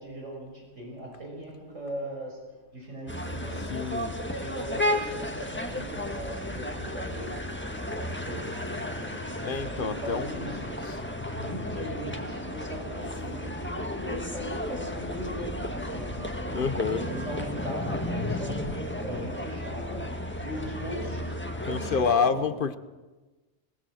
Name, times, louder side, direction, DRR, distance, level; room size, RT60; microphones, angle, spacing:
voice 1, 0.0-2.4 2.7-4.0 4.3-7.5 7.9-9.3 9.7-10.7 11.3-16.5 16.8-21.4 21.7-22.5, right 1 dB, 85° right, -1 dB, 6.6 m, -39 dB
sound 1, 3.1-22.1, left 1 dB, 10° left, 1.5 m, -33 dB
voice 2, 3.7-4.1 9.4-11.0 16.5-17.0 21.6-22.8, left 6 dB, 50° left, 13 dB, 1.0 m, -28 dB
21.5 x 20.0 x 6.4 m, 1.2 s
omnidirectional pair, 1.2 m